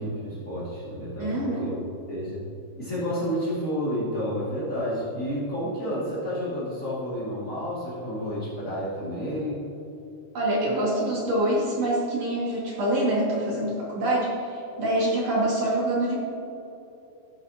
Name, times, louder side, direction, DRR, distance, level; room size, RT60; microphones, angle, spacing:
voice 1, 0.0-1.8 2.1-2.4 2.8-9.6, equal, 60° left, -9 dB, 0.8 m, -30 dB
voice 2, 1.2-1.7 10.3-16.1, right 1 dB, 45° right, -6 dB, 2.3 m, -25 dB
15.5 x 7.4 x 2.8 m, 2.9 s
omnidirectional pair, 5.5 m